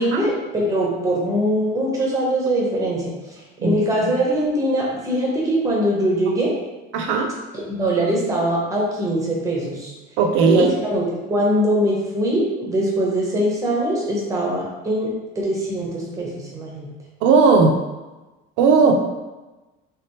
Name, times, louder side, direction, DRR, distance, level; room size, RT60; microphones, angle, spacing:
voice 1, 0.0-3.1 3.6-6.5 7.7-9.9 10.4-16.9, right 1 dB, 15° right, -3 dB, 0.8 m, -22 dB
voice 2, 6.9-7.3 10.2-10.7 17.2-17.7 18.6-18.9, right 4 dB, 65° right, 3 dB, 0.6 m, -16 dB
3.5 x 3.4 x 2.9 m, 1.1 s
cardioid pair, 170°, 20 cm